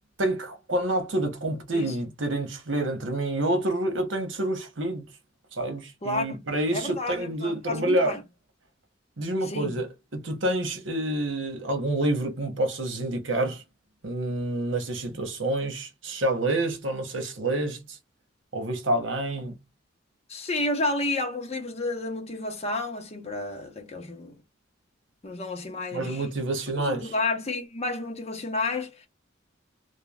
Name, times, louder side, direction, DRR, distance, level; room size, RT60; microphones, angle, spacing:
voice 1, 0.2-5.1 5.5-8.2 9.2-13.6 14.0-18.0 18.5-19.6 25.9-27.1, right 1 dB, 75° right, 1.0 m, -28 dB
voice 2, 6.0-6.4 6.7-8.2 9.4-9.7 20.3-24.3 25.2-26.3 26.8-29.1, left 2 dB, 35° left, 0.9 m, -31 dB
3.2 x 2.3 x 2.3 m
head